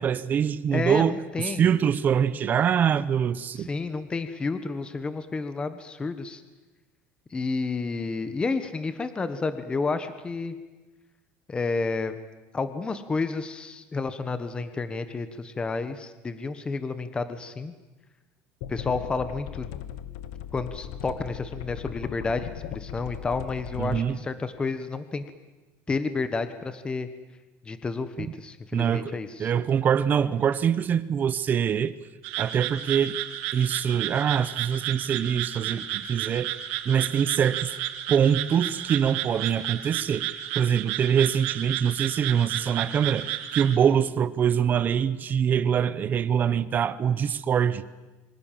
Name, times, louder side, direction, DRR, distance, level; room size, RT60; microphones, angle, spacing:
voice 1, 0.0-3.7 23.8-24.2 28.7-31.9 32.4-33.2 33.5-36.5 36.8-37.7 38.1-47.8, right 8 dB, 30° right, 16 dB, 1.0 m, -24 dB
voice 2, 0.7-1.6 3.5-6.4 7.3-10.5 11.5-12.1 12.5-17.7 18.7-19.6 20.5-25.2 25.9-27.1 27.6-29.5, left 4 dB, 15° left, 11 dB, 1.4 m, -30 dB
sound 1, 18.6-24.0, left 10 dB, 80° left, 1.5 m, -38 dB
sound 2, 32.2-43.8, right 13 dB, 90° right, 2.0 m, -32 dB
26.5 x 25.0 x 7.6 m, 1.2 s
cardioid pair, 150°, 6 cm